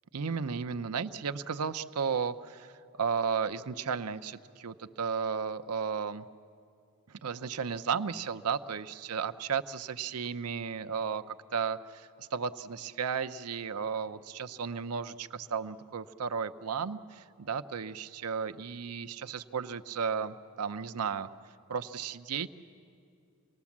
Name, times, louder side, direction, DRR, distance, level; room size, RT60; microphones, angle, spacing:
voice 1, 0.1-6.3 7.1-21.3 21.7-22.5, right 6 dB, 90° right, 11 dB, 0.6 m, -34 dB
27.0 x 19.5 x 7.3 m, 2.4 s
head